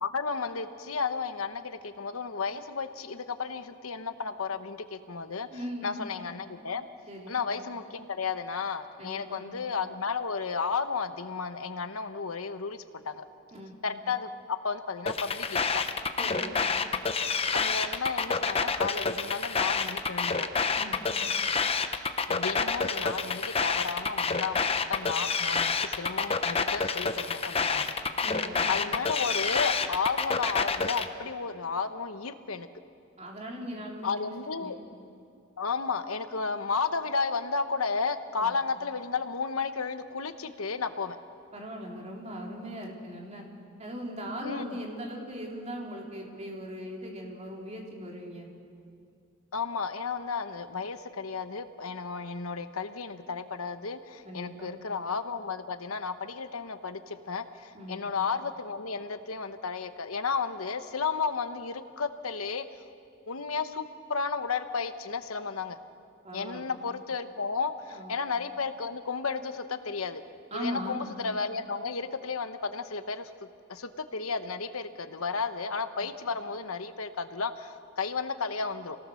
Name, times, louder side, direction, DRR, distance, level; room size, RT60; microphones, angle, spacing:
voice 1, 0.0-5.5 5.8-6.9 7.3-13.2 13.8-15.8 17.5-20.5 22.3-27.9 28.7-32.7 34.0-34.8 35.6-41.2 44.4-44.7 49.5-62.6 63.3-65.8 66.3-70.2 70.5-73.3 73.7-79.0, left 5 dB, 85° left, 9 dB, 1.1 m, -33 dB
voice 2, 5.5-6.1 7.1-7.4 9.0-9.5 13.5-13.7 16.2-16.6 20.8-21.0 28.2-28.7 33.2-34.7 38.4-38.5 41.5-43.4 43.8-48.5 54.3-54.7 57.7-58.1 66.2-66.7 67.9-68.2 70.5-71.0 76.0-76.1, equal, 30° right, -1 dB, 3.5 m, -39 dB
sound 1, 15.1-31.1, left 5 dB, 30° left, 0.9 m, -28 dB
27.5 x 18.5 x 6.4 m, 2.4 s
head